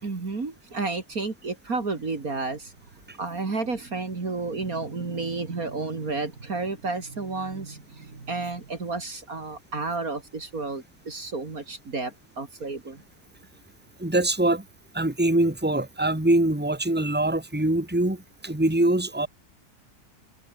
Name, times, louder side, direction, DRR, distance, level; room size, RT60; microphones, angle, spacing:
voice 1, 0.0-2.7 3.2-13.0, right 3 dB, 50° right, 3.2 m, -31 dB
voice 2, 14.0-14.6 14.9-19.3, right 1 dB, 5° right, 3.1 m, -23 dB
omnidirectional pair, 1.9 m